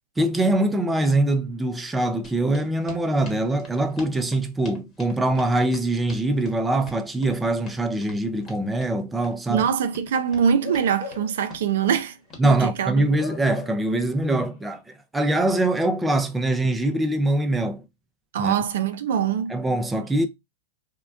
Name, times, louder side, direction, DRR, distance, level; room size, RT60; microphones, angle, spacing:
voice 1, 0.2-9.7 12.4-14.8 15.1-17.8 18.4-18.5 19.5-20.3, right 1 dB, 10° right, 0.5 m, -23 dB
sound 1, 2.2-12.5, left 2 dB, 30° left, 1.0 m, -45 dB
voice 2, 9.5-12.2 12.4-13.1 18.3-19.6, right 8 dB, 70° right, 0.4 m, -23 dB
Bark / Livestock farm animals working animals, 10.5-11.5 11.9-12.0 13.2-14.0 14.3-14.5, left 7 dB, 50° left, 0.5 m, -39 dB
3.6 x 2.1 x 2.3 m
hypercardioid pair, 115°, 0 cm